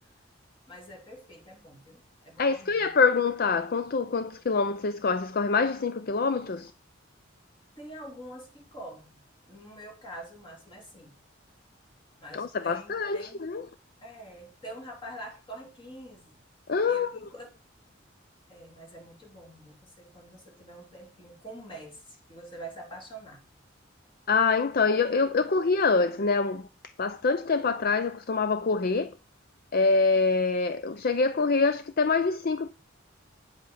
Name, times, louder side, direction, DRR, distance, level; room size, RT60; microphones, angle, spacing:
voice 1, 0.7-2.9 7.8-9.2 9.5-11.1 12.2-13.4 14.0-16.4 16.9-17.5 18.5-23.4, right 1 dB, 25° left, 3.4 m, -45 dB
voice 2, 2.4-6.7 12.3-13.7 16.7-17.1 24.3-26.7 27.0-29.1 29.7-32.7, left 4 dB, 50° left, 0.6 m, -25 dB
9.7 x 7.8 x 5.7 m
head